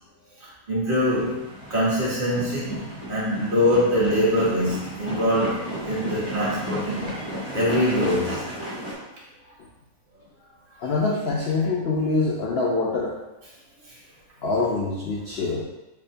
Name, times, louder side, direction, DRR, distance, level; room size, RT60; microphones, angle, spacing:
voice 1, 0.7-1.4 1.7-2.8 3.1-7.1 7.5-8.4, equal, 40° right, -6 dB, 0.9 m, -23 dB
sound 1, 1.1-8.9, equal, 25° left, 0.7 m, -34 dB
voice 2, 10.8-13.2 14.4-15.6, left 3 dB, 85° left, -3 dB, 0.5 m, -24 dB
5.3 x 2.1 x 2.7 m, 1.0 s
omnidirectional pair, 1.6 m